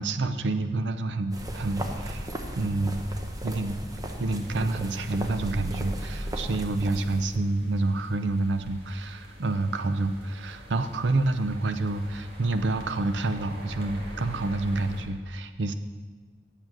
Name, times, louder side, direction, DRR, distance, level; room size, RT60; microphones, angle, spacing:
voice 1, 0.0-2.3 2.6-3.0 3.4-3.8 4.2-15.7, right 2 dB, 85° right, 9 dB, 0.6 m, -28 dB
sound 1, 1.3-7.4, right 1 dB, 20° right, 0.8 m, -36 dB
sound 2, 4.2-15.0, equal, 65° right, 1.8 m, -46 dB
8.8 x 7.4 x 6.2 m, 1.4 s
head